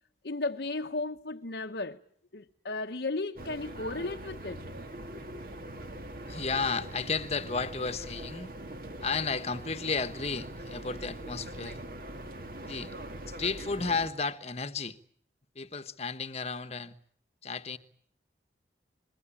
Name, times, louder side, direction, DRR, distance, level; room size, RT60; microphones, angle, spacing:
voice 1, 0.2-2.0 2.3-4.6, left 3 dB, 70° left, 1.1 m, -34 dB
sound 1, 3.3-14.1, right 1 dB, 50° right, 2.4 m, -42 dB
voice 2, 6.3-8.5 9.0-11.8 12.7-12.9 13.3-15.0 15.5-16.9 17.4-17.8, left 4 dB, 35° left, 1.3 m, -33 dB
26.0 x 22.0 x 8.7 m
head